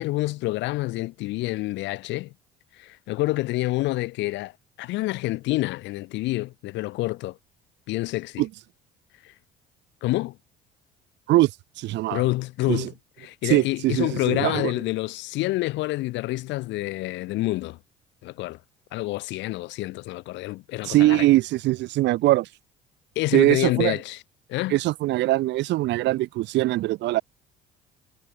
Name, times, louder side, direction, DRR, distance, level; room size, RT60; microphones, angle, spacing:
voice 1, 0.0-2.3 2.8-4.5 4.8-7.4 7.9-8.4 9.2-9.3 10.0-10.4 12.1-12.9 13.2-17.8 18.2-18.6 18.9-21.3 23.2-24.2 24.5-24.8, left 19 dB, 75° left, 4.3 m, -27 dB
voice 2, 11.8-12.2 12.7-12.9 13.4-14.7 20.8-22.5 23.3-24.0 24.7-27.2, right 17 dB, 70° right, 2.5 m, -22 dB
supercardioid pair, 90°, 19 cm